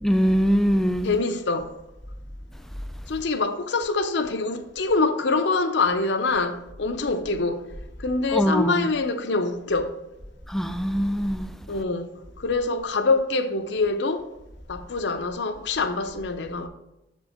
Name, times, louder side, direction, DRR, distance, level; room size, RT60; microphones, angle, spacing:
voice 1, 0.0-1.1 8.3-8.9 10.5-11.5, equal, ahead, 0.3 m, -22 dB
voice 2, 1.0-1.7 3.1-7.6 8.0-10.0 11.7-12.1 12.4-14.3 14.7-16.7, left 3 dB, 65° left, 0.6 m, -25 dB
7.3 x 4.5 x 4.3 m
head